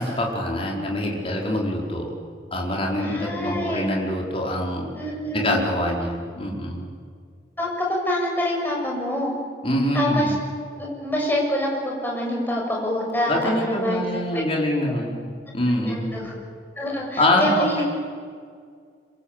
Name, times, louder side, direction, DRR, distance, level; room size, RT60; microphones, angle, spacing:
voice 1, 0.0-2.1 2.5-4.9 5.3-6.9 9.6-10.3 13.3-16.1 17.2-17.8, left 1 dB, 35° left, -1 dB, 4.8 m, -24 dB
voice 2, 3.0-3.9 5.0-5.6 7.6-9.3 9.9-10.3 10.8-14.1 14.9-15.0 15.8-16.3 16.8-17.8, left 1 dB, 10° left, -2 dB, 7.2 m, -26 dB
26.0 x 25.0 x 8.3 m, 2.1 s
head